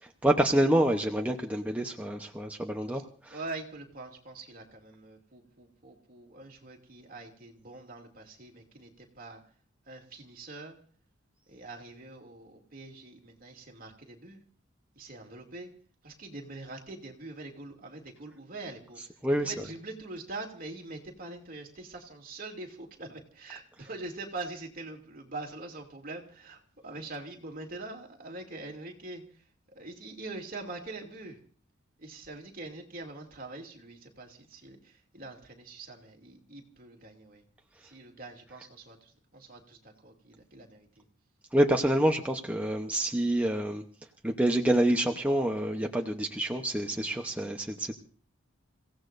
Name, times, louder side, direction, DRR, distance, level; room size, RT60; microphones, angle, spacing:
voice 1, 0.0-3.4 19.2-19.5 41.5-43.8 44.2-47.9, right 1 dB, 5° right, 2 dB, 0.8 m, -27 dB
voice 2, 3.3-9.4 9.9-10.8 11.5-14.4 14.9-15.7 16.0-31.4 32.0-37.4 37.8-41.0, right 2 dB, 45° right, 1 dB, 2.6 m, -44 dB
29.5 x 16.5 x 2.6 m, 0.44 s
head